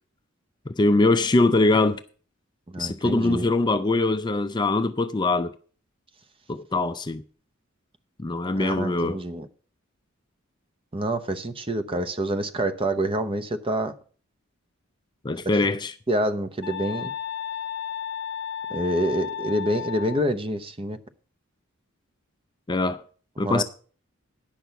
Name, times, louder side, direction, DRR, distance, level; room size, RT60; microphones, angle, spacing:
voice 1, 0.7-2.0 2.8-5.5 6.5-7.2 8.2-9.2 15.2-15.9 22.7-23.0 23.4-23.6, left 2 dB, 20° left, 0.4 m, -22 dB
voice 2, 2.7-3.4 8.5-9.5 10.9-13.9 15.4-15.5 16.1-17.1 18.7-21.0 23.4-23.6, right 1 dB, 25° right, 0.8 m, -27 dB
sound 1, 16.6-20.3, left 8 dB, 50° left, 0.8 m, -33 dB
10.0 x 6.2 x 6.8 m
head